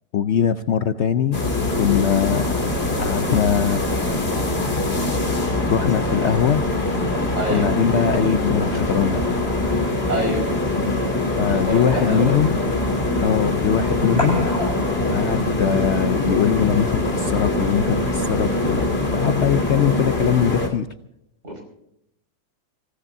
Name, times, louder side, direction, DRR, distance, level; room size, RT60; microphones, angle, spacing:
voice 1, 0.1-1.4 1.8-2.6 3.0-4.4 5.7-6.8 7.5-9.3 11.4-12.6 13.2-14.5 15.1-20.9, left 8 dB, 85° left, 10 dB, 0.6 m, -21 dB
sound 1, 1.0-18.0, equal, 15° left, 8.0 m, -38 dB
sound 2, 1.3-20.7, left 2 dB, 30° left, 2.8 m, -23 dB
voice 2, 7.4-7.7 10.1-10.4 11.6-12.3 21.4-21.6, right 1 dB, 35° right, 2 dB, 5.8 m, -25 dB
26.5 x 16.0 x 2.7 m, 0.78 s
omnidirectional pair, 2.0 m